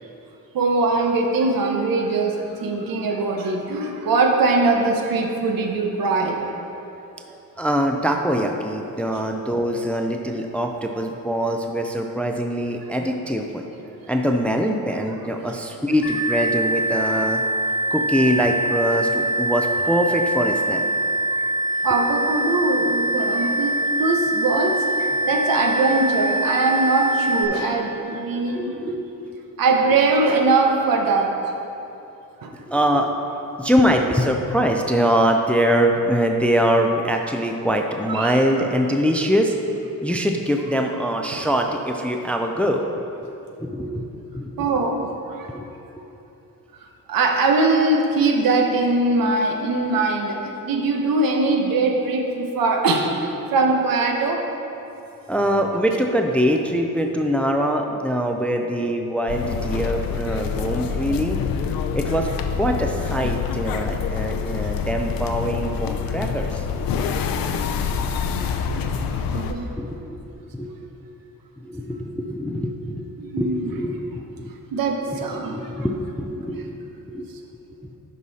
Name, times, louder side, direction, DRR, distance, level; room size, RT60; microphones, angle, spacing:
voice 1, 0.5-6.4 21.8-28.8 29.6-31.3 32.4-32.5 38.1-38.4 41.3-41.4 44.6-45.5 47.1-54.4 69.3-69.7 73.2-73.7 74.7-75.7, right 3 dB, 75° right, 2 dB, 1.1 m, -21 dB
voice 2, 7.6-13.6 14.1-17.4 17.9-20.8 28.5-29.2 32.7-33.1 33.6-39.5 40.0-42.8 43.6-44.0 44.3-44.8 45.5-45.7 55.3-61.4 61.9-62.3 62.6-66.6 69.8-70.2 70.5-70.7 71.6-73.1 73.4-74.5 75.1-77.3, equal, 5° left, 3 dB, 0.4 m, -23 dB
sound 1, 16.0-27.4, right 1 dB, 30° left, 1.1 m, -23 dB
sound 2, 59.3-69.5, left 6 dB, 75° left, 0.6 m, -26 dB
11.0 x 5.5 x 4.1 m, 2.9 s
wide cardioid pair, 150°, 34 cm